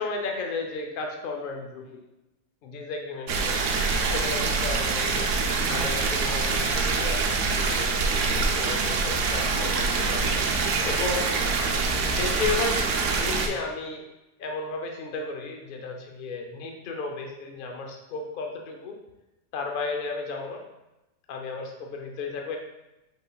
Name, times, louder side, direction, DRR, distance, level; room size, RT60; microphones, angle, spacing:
voice 1, 0.0-2.1 2.6-3.6 4.1-5.3 5.6-8.2 8.6-10.3 10.9-11.4 12.0-14.0 14.4-19.0 19.5-20.6 21.3-22.6, left 4 dB, 70° left, 2 dB, 0.5 m, -34 dB
sound 1, 3.3-13.5, right 4 dB, 70° right, 0.8 m, -25 dB
5.3 x 3.8 x 2.2 m, 0.95 s
omnidirectional pair, 1.5 m